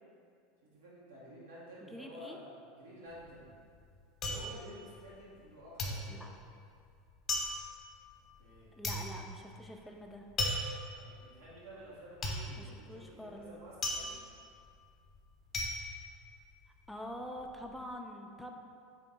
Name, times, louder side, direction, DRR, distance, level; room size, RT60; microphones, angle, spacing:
voice 1, 0.6-3.5 4.2-6.3 8.4-8.7 11.0-14.2, equal, 75° right, -8 dB, 1.1 m, -51 dB
voice 2, 1.8-2.4 6.1-6.3 8.7-10.3 12.6-13.6 16.9-18.6, equal, 5° left, 2 dB, 0.4 m, -46 dB
sound 1, 3.1-5.5 5.8-16.9 17.2-17.8, left 2 dB, 30° left, 0.9 m, -38 dB
3.4 x 2.8 x 4.0 m, 2.3 s
hypercardioid pair, 85°, 0 cm